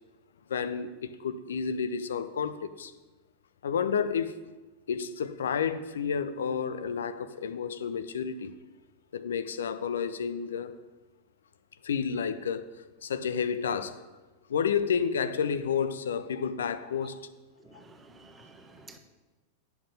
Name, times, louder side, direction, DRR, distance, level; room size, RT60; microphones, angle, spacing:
voice 1, 0.5-2.9 3.6-4.4 4.9-8.5 9.1-10.8 11.8-12.7 13.0-14.0 14.5-17.3, left 6 dB, 65° left, 0.6 m, -30 dB
voice 2, 17.7-19.0, right 3 dB, 15° right, 1.2 m, -52 dB
10.5 x 7.0 x 5.3 m
figure-of-eight pair, 90°, 0 cm